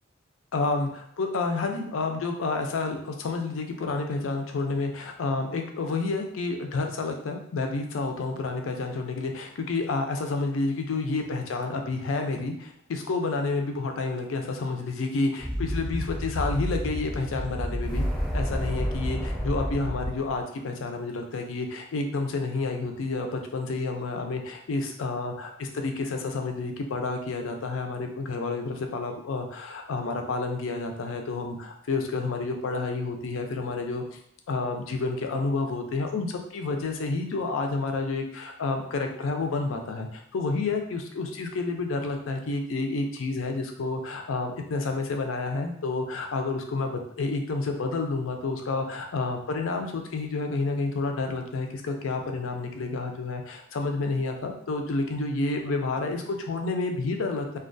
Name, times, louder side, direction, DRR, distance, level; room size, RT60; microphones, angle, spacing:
voice 1, 0.5-18.1 18.3-34.2 34.5-57.6, left 3 dB, 80° left, 4 dB, 0.4 m, -30 dB
sound 1, 15.4-20.4, equal, 5° left, 0.3 m, -30 dB
2.3 x 2.2 x 2.5 m, 0.67 s
head